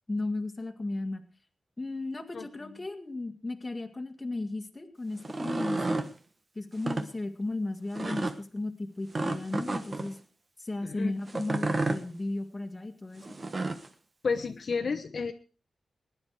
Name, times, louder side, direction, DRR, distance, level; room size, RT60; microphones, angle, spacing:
voice 1, 0.1-1.2 1.8-6.0 6.6-10.2 10.6-13.4, left 2 dB, 15° left, 5 dB, 1.8 m, -35 dB
voice 2, 2.3-2.7 10.8-11.1 14.2-15.3, left 5 dB, 50° left, 6 dB, 1.0 m, -32 dB
sound 1, 5.2-6.1 6.7-7.1 8.0-8.4 9.1-10.1 11.3-12.0 13.2-13.9, right 2 dB, 30° right, 1.2 m, -31 dB
20.5 x 10.5 x 4.7 m, 0.36 s
wide cardioid pair, 160°, 0 cm